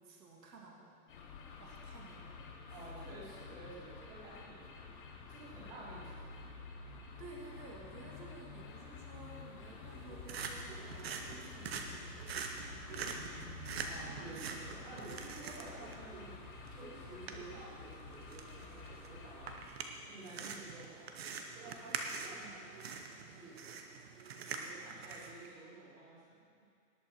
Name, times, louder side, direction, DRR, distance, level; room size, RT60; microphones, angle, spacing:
voice 1, 0.0-2.4 2.7-2.9 7.2-12.4 12.7-13.4, right 3 dB, 85° right, -1 dB, 2.6 m, -54 dB
sound 1, 1.1-19.7, left 5 dB, 30° left, 1.0 m, -50 dB
voice 2, 2.7-4.9 5.3-6.5 13.9-16.4 16.7-19.5 20.1-21.2 21.5-22.7 23.1-23.7 24.3-26.6, right 2 dB, 25° right, -8 dB, 3.5 m, -52 dB
sound 2, 9.9-25.5, right 5 dB, 40° right, 0.9 m, -45 dB
18.5 x 8.3 x 4.4 m, 2.3 s
hypercardioid pair, 175°, 48 cm